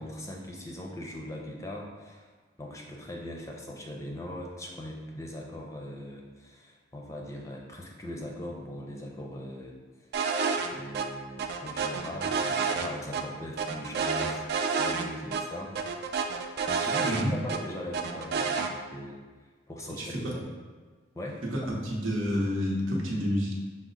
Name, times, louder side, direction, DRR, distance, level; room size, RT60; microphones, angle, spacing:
voice 1, 0.0-2.3 2.6-9.8 10.7-14.5 14.8-15.8 16.1-19.2 19.7-20.5 21.1-21.7, left 1 dB, 15° left, -1 dB, 0.5 m, -40 dB
sound 1, 10.1-10.7 10.9-11.0 11.4-13.2 13.6-15.0 15.3-15.4 15.7-17.6 17.9-18.7, right 5 dB, 55° right, 0.3 m, -29 dB
voice 2, 20.0-20.3 21.5-23.5, equal, 90° right, -2 dB, 0.9 m, -29 dB
6.0 x 2.1 x 3.9 m, 1.5 s
head